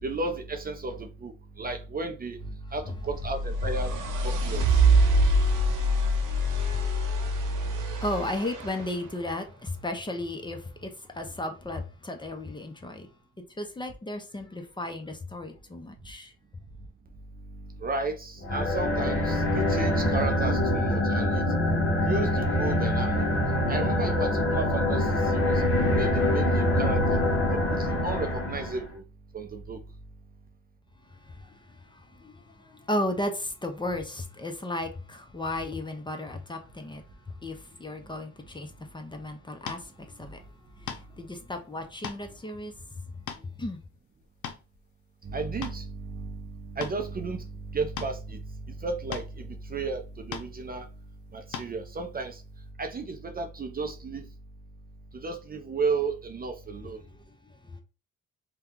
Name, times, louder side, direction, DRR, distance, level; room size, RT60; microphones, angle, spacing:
voice 1, 0.0-4.0 4.2-4.6 17.8-21.5 22.0-23.3 23.7-25.6 25.9-27.2 27.5-29.0 29.3-29.8 45.2-48.5 48.8-50.9 51.3-52.4 52.8-54.3 55.1-57.0, right 3 dB, 30° right, 0.5 m, -33 dB
sound 1, 2.9-9.0, right 1 dB, 90° right, 0.9 m, -25 dB
voice 2, 4.9-13.1 13.6-16.3 31.1-40.4 40.7-43.1 43.4-43.8 57.0-57.8, left 1 dB, 15° left, 0.7 m, -35 dB
sound 2, 18.4-28.9, left 1 dB, 50° left, 1.0 m, -25 dB
sound 3, 39.7-39.8 40.9-41.2 41.8-42.2 42.7-42.8 43.3-43.5 44.2-44.8 45.3-45.8 46.8-47.0 48.0-48.2 49.1-49.3 50.3-50.5 51.5-51.7, left 7 dB, 75° left, 0.7 m, -37 dB
2.8 x 2.3 x 3.7 m
cardioid pair, 90°, 30 cm